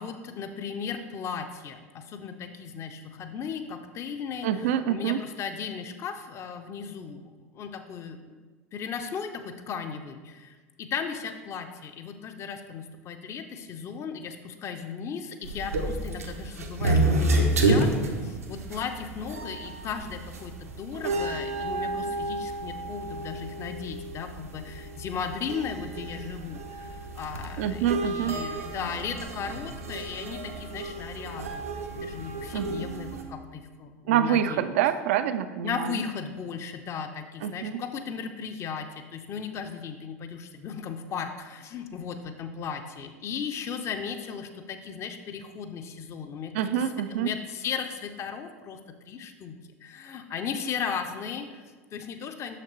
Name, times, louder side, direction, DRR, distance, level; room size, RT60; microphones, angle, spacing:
voice 1, 0.0-8.4 8.7-34.6 35.6-46.8 47.1-48.8 49.0-52.6, left 6 dB, 35° left, 7 dB, 0.6 m, -36 dB
voice 2, 4.4-5.2 27.6-28.4 32.5-32.9 34.1-36.0 37.4-37.8 46.5-47.3, right 10 dB, 65° right, 11 dB, 0.4 m, -26 dB
sound 1, 15.4-33.2, right 2 dB, 85° right, 0.7 m, -30 dB
6.4 x 5.8 x 3.1 m, 1.4 s
figure-of-eight pair, 75°, 8 cm